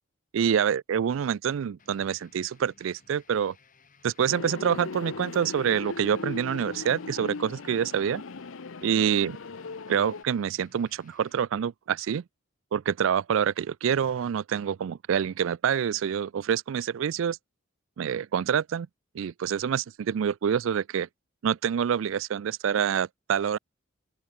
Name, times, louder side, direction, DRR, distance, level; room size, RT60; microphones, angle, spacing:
voice 1, 0.3-3.5 4.0-8.2 8.8-9.4 9.9-12.2 12.7-17.4 18.0-18.9 19.1-21.1 21.4-23.6, right 8 dB, 75° right, 0.4 m, -26 dB
sound 1, 1.8-11.4, left 4 dB, 45° left, 4.1 m, -60 dB
sound 2, 4.3-10.2, left 4 dB, 75° left, 0.7 m, -38 dB
open air
head